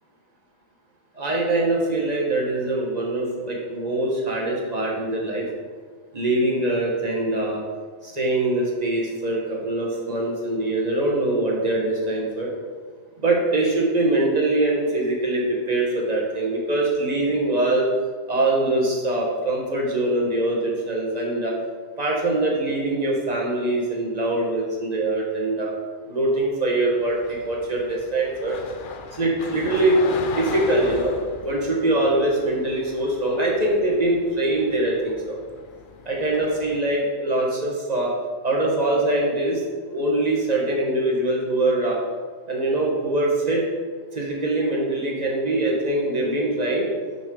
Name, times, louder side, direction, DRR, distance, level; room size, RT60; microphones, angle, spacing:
voice 1, 1.2-5.4 6.1-7.6 8.0-12.5 13.2-17.9 18.3-21.5 22.0-25.7 26.1-28.6 29.1-30.0 30.4-31.1 31.4-35.4 36.0-38.1 38.4-39.6 39.9-42.0 42.5-43.6 44.1-46.9, right 2 dB, 30° right, -3 dB, 1.6 m, -23 dB
sound 1, 27.0-36.8, left 5 dB, 55° left, 0.6 m, -38 dB
6.1 x 6.0 x 5.4 m, 1.6 s
omnidirectional pair, 1.3 m